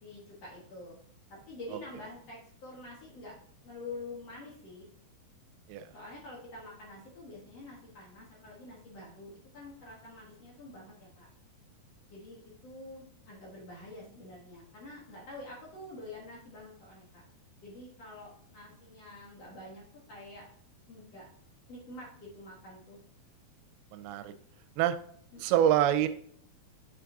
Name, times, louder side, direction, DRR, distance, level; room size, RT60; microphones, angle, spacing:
voice 1, 0.0-1.0 1.3-3.3 3.6-4.9 5.9-11.3 12.1-17.2 17.6-20.5 20.9-21.3 21.7-23.0 25.3-25.6, left 2 dB, 60° left, -4 dB, 1.8 m, -47 dB
voice 2, 23.9-24.3 24.8-25.0 25.4-26.1, right 10 dB, 90° right, 11 dB, 2.5 m, -25 dB
6.3 x 5.8 x 2.6 m, 0.62 s
omnidirectional pair, 4.4 m